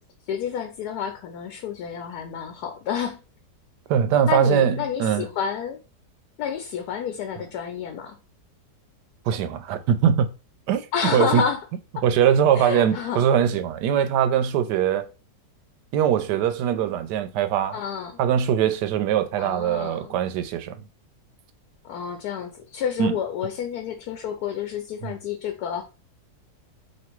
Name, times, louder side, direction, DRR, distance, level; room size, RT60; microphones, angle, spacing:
voice 1, 0.3-3.2 4.3-5.8 6.4-8.2 10.9-11.6 12.5-13.3 17.7-18.2 19.4-20.2 21.8-25.8, left 7 dB, 75° left, 1.1 m, -29 dB
voice 2, 3.9-5.3 9.3-10.3 10.7-10.8 11.1-11.4 12.0-15.1 15.9-17.8 18.2-20.7 23.0-23.1 25.0-25.1, right 9 dB, 85° right, 1.2 m, -21 dB
3.1 x 2.6 x 4.4 m
omnidirectional pair, 1.8 m